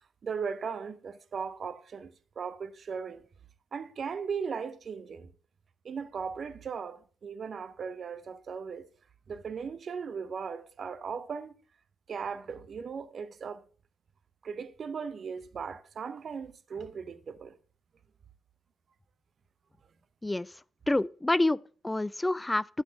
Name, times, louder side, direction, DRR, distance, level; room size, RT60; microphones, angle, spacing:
voice 1, 0.2-3.2 3.7-5.3 5.8-8.9 9.3-11.6 12.1-13.6 14.4-17.6, right 6 dB, 55° right, 0.7 m, -37 dB
voice 2, 20.9-22.6, left 2 dB, 15° left, 0.4 m, -27 dB
9.2 x 8.1 x 3.5 m
hypercardioid pair, 40°, 0 cm